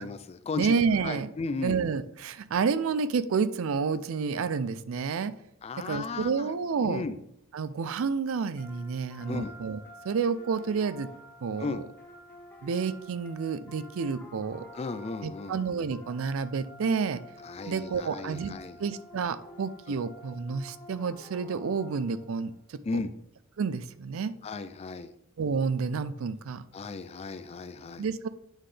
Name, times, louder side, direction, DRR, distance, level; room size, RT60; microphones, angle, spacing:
voice 1, 0.0-0.7 1.0-1.8 5.6-6.5 6.8-7.2 9.3-9.5 11.6-11.8 14.7-15.5 17.4-18.8 19.9-20.0 22.8-23.1 24.4-25.1 26.7-28.0, left 3 dB, 30° left, 12 dB, 0.3 m, -35 dB
voice 2, 0.6-1.3 1.6-5.3 5.8-7.0 7.5-11.1 11.4-11.9 12.6-14.7 15.2-17.2 17.7-18.5 18.8-22.8 23.6-24.3 25.4-26.6 28.0-28.3, right 5 dB, 70° right, 14 dB, 0.4 m, -30 dB
sound 1, 8.6-22.4, left 1 dB, 10° left, 0.9 m, -50 dB
8.9 x 3.8 x 3.2 m, 0.76 s
head